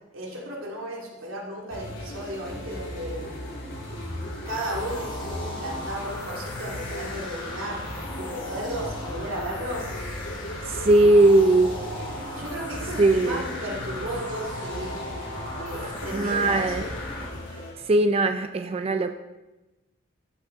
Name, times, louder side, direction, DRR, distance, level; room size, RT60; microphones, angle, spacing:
voice 1, 0.1-3.3 4.5-7.8 8.2-9.9 12.3-14.9 15.5-16.9, right 1 dB, 85° right, -3 dB, 2.5 m, -34 dB
sound 1, 1.7-17.7, left 1 dB, 65° left, 3.6 m, -37 dB
sound 2, 4.5-17.3, left 2 dB, 25° left, 3.0 m, -37 dB
voice 2, 10.7-11.7 13.0-13.4 15.8-16.9 17.9-19.2, right 2 dB, 30° right, 8 dB, 0.4 m, -20 dB
13.5 x 5.9 x 3.9 m, 1.1 s
head